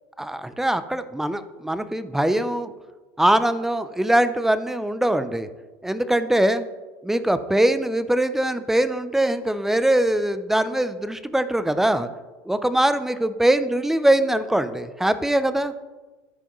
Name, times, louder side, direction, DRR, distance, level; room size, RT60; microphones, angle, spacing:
voice 1, 0.2-2.7 3.2-5.5 5.8-6.6 7.0-12.1 12.5-15.7, right 1 dB, 5° right, 12 dB, 0.4 m, -22 dB
12.5 x 4.8 x 3.0 m, 1.3 s
supercardioid pair, 110°, 9 cm